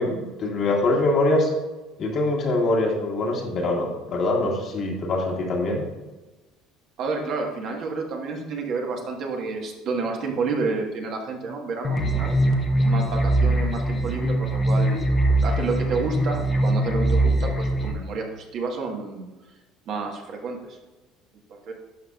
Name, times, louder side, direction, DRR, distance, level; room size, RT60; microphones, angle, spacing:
voice 1, 0.0-1.5 2.0-5.8, left 2 dB, 55° left, -1 dB, 1.8 m, -23 dB
voice 2, 7.0-12.3 12.8-15.0 15.4-19.2 19.8-20.8 21.5-21.7, right 4 dB, 60° right, 1 dB, 1.3 m, -30 dB
sound 1, 11.8-17.9, right 1 dB, 30° left, 0.9 m, -22 dB
11.0 x 5.0 x 2.4 m, 1.1 s
supercardioid pair, 85°, 0 cm